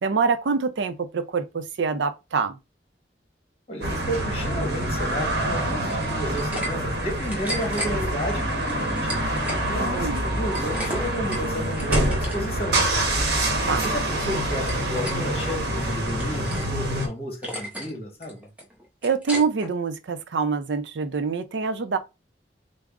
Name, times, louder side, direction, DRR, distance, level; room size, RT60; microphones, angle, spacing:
voice 1, 0.0-2.6 9.7-10.3 13.6-13.8 19.0-22.0, right 5 dB, 85° right, 0.5 m, -25 dB
voice 2, 3.7-9.1 9.7-12.8 13.6-18.5, equal, 35° left, 1.2 m, -32 dB
sound 1, 3.8-17.1, right 1 dB, 65° right, 0.8 m, -26 dB
sound 2, 5.9-6.7 7.0-7.9 8.6-9.6 10.0-12.4 12.6-12.9 13.3-14.0 14.3-15.2 15.6-16.7 17.0-17.1 17.4-17.9 18.2-19.7, equal, 10° right, 0.8 m, -34 dB
3.5 x 2.0 x 3.5 m
head